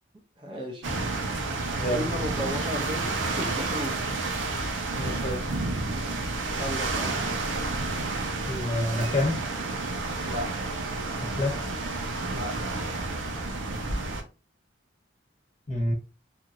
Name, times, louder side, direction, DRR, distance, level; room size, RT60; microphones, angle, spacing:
voice 1, 0.4-0.9 1.9-4.0 6.5-7.4 10.2-10.5 12.3-12.6, equal, 25° right, 0.5 m, -34 dB
sound 1, 0.8-14.2, right 3 dB, 75° right, 0.6 m, -30 dB
voice 2, 4.9-5.5 8.5-9.4 11.2-11.6 15.7-15.9, left 1 dB, 35° left, 0.8 m, -28 dB
2.9 x 2.5 x 2.5 m
head